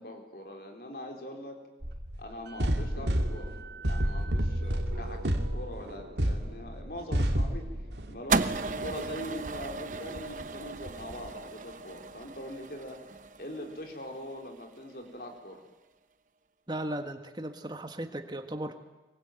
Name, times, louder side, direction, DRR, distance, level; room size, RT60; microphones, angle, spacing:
voice 1, 0.0-1.6 2.2-3.6 3.8-7.7 8.1-13.0 13.4-15.6, left 1 dB, 55° left, 2 dB, 4.1 m, -42 dB
sound 1, 1.8-2.2 2.6-8.2 8.5-11.4, equal, 80° right, 2.5 m, -31 dB
sound 2, 8.3-14.6, right 3 dB, 45° right, 1.0 m, -35 dB
voice 2, 16.7-18.8, right 1 dB, 25° right, 7 dB, 1.7 m, -36 dB
24.5 x 22.5 x 9.2 m, 1.1 s
head